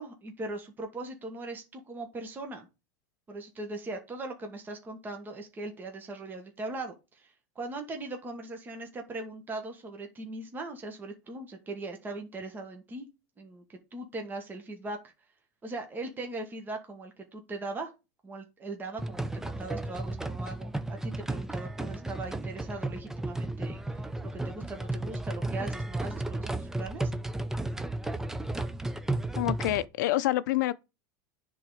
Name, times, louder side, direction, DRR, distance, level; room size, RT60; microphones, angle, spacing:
voice 1, 0.0-2.7 3.3-7.3 7.5-13.1 13.4-15.0 15.6-17.9 18.2-23.8 24.2-27.1, right 2 dB, 20° right, 1.4 m, -40 dB
sound 1, 19.0-29.8, right 2 dB, 5° right, 0.5 m, -34 dB
voice 2, 29.4-30.7, left 15 dB, 80° left, 0.5 m, -27 dB
9.9 x 3.8 x 4.9 m
supercardioid pair, 135°, 10 cm